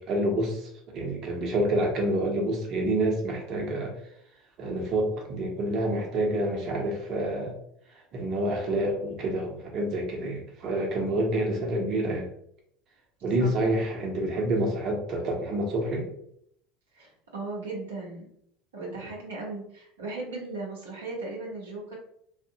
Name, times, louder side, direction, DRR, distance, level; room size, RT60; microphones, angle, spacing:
voice 1, 0.0-3.9 4.6-7.5 8.1-12.2 13.2-16.0, right 1 dB, 45° right, 0 dB, 0.7 m, -28 dB
voice 2, 16.9-18.3 18.7-21.9, right 3 dB, 80° right, -2 dB, 0.7 m, -37 dB
2.7 x 2.1 x 2.6 m, 0.70 s
hypercardioid pair, 75°, 0 cm